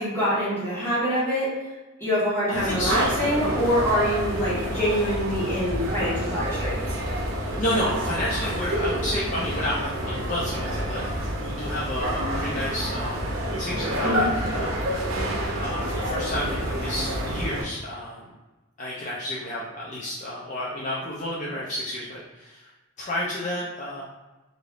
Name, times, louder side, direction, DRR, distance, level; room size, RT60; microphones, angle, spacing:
voice 1, 0.0-1.5 2.0-6.7 14.0-14.3, equal, 10° left, -11 dB, 1.4 m, -25 dB
voice 2, 2.5-3.2 7.5-11.0 11.4-13.2 13.6-14.8 15.6-18.3 18.8-22.6 23.0-24.0, left 1 dB, 35° left, -7 dB, 0.5 m, -31 dB
sound 1, 2.5-17.6, equal, 85° right, 0.7 m, -28 dB
3.2 x 2.6 x 2.4 m, 1.1 s
head